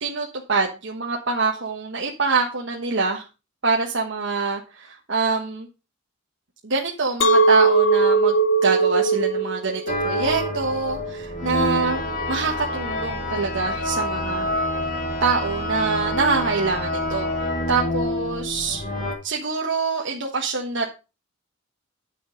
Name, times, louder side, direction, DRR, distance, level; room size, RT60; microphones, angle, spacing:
voice 1, 0.0-3.2 3.6-5.7 6.6-8.4 8.6-12.0 12.3-14.5 15.2-17.3 17.7-18.8 19.2-20.9, right 4 dB, 60° right, 0 dB, 1.3 m, -25 dB
Chink clink, 7.2-12.4, right 4 dB, 65° left, 1.0 m, -20 dB
sound 1, 9.9-19.2, left 1 dB, 40° left, 2.5 m, -27 dB
9.0 x 6.3 x 5.3 m, 0.30 s
head